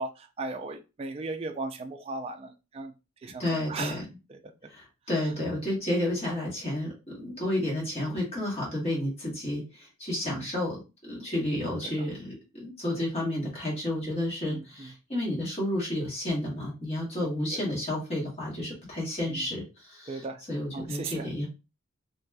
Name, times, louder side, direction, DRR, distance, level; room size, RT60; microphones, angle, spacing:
voice 1, 0.0-2.9 3.2-4.0 4.3-4.4 10.2-10.5 14.4-14.9 17.5-17.6 19.3-19.4 20.1-20.4 20.7-21.3, right 3 dB, 30° right, 5 dB, 0.3 m, -36 dB
voice 2, 3.4-4.0 4.7-21.5, left 1 dB, 30° left, -4 dB, 1.3 m, -31 dB
3.0 x 2.8 x 2.2 m, 0.28 s
head